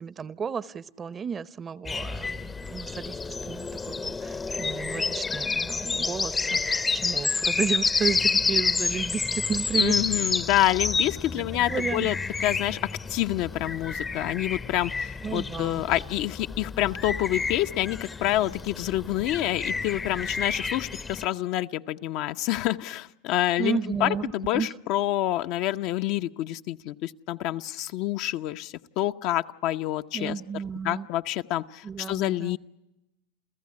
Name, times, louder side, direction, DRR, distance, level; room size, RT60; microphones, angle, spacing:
voice 1, 0.0-10.0 10.3-10.4 11.7-12.1 15.2-15.9 23.6-24.7 30.1-31.1 31.8-32.6, right 6 dB, 25° right, 17 dB, 0.8 m, -33 dB
sound 1, 1.8-21.3, left 4 dB, 20° left, 0.8 m, -29 dB
voice 2, 9.8-12.2 12.4-12.8 13.1-30.4 30.8-32.6, left 14 dB, 55° left, 8 dB, 0.9 m, -27 dB
29.5 x 15.0 x 9.7 m, 0.91 s
hypercardioid pair, 100°, 0 cm